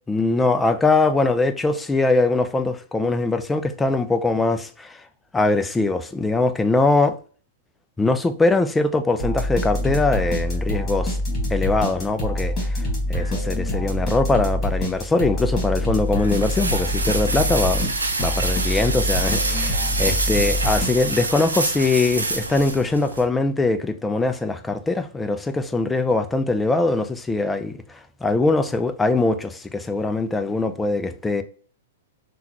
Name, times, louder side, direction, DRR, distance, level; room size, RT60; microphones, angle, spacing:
voice 1, 0.1-5.0 5.3-7.2 8.0-11.2 11.5-17.9 18.2-31.4, left 3 dB, 10° left, 0.4 m, -22 dB
sound 1, 9.2-21.4, left 1 dB, 30° left, 1.6 m, -25 dB
sound 2, 15.4-23.2, right 3 dB, 90° right, 0.5 m, -26 dB
3.6 x 2.3 x 2.8 m
hypercardioid pair, 110°, 0 cm